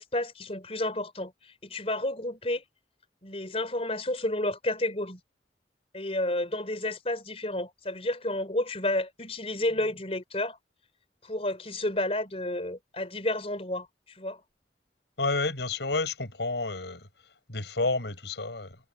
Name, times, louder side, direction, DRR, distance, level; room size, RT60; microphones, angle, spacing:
voice 1, 0.0-2.6 3.2-5.2 5.9-10.6 11.2-14.4, left 1 dB, 35° left, 4.3 m, -31 dB
voice 2, 15.2-17.1 17.5-18.8, left 3 dB, 75° left, 4.9 m, -30 dB
head